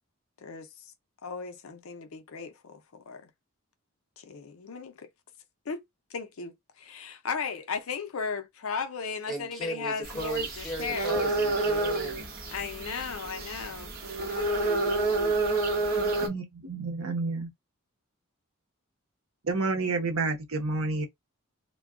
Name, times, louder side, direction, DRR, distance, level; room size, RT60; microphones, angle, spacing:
voice 1, 0.4-0.8 1.2-3.3 4.2-5.1 5.7-5.8 6.1-10.5 10.8-11.1 12.5-15.4 15.9-16.0, left 5 dB, 75° left, 0.6 m, -36 dB
voice 2, 9.3-12.2, right 1 dB, ahead, 1.0 m, -36 dB
sound 1, 10.0-16.3, right 3 dB, 45° right, 0.9 m, -29 dB
voice 3, 15.9-17.5 19.4-21.1, right 3 dB, 75° right, 0.8 m, -30 dB
2.2 x 2.2 x 3.5 m
head